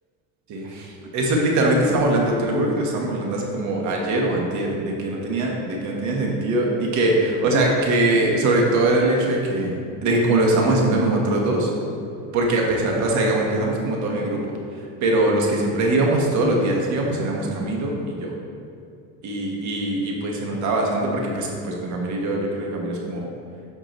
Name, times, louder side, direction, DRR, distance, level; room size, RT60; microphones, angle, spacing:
voice 1, 0.5-9.8 10.0-11.7 12.3-14.4 15.0-18.3 19.2-23.2, right 2 dB, 50° right, 0 dB, 1.3 m, -22 dB
8.1 x 5.9 x 3.0 m, 2.5 s
supercardioid pair, 125°, 36 cm